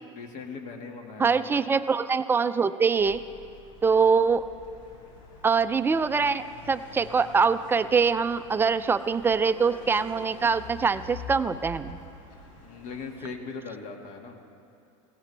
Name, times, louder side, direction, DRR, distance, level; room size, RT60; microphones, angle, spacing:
voice 1, 0.0-1.7 12.5-14.4, left 4 dB, 50° left, 3 dB, 1.9 m, -40 dB
voice 2, 1.2-3.2 3.8-4.4 5.4-12.0, right 5 dB, 15° right, 12 dB, 0.4 m, -24 dB
sound 1, 3.0-13.3, left 2 dB, 85° left, 3.5 m, -47 dB
17.0 x 16.0 x 3.3 m, 2.6 s
supercardioid pair, 110°, 17 cm